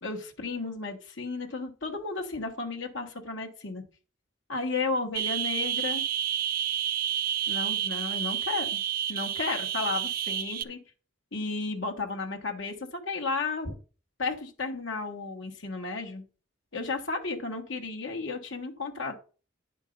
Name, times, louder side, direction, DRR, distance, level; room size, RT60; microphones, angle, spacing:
voice 1, 0.0-3.8 4.5-6.0 7.5-8.8 9.1-10.8 11.3-13.7 14.2-16.2 16.7-19.2, left 3 dB, 65° left, 1 dB, 1.4 m, -33 dB
sound 1, 5.2-10.6, right 10 dB, 45° right, 0.5 m, -30 dB
9.9 x 4.5 x 5.2 m, 0.36 s
head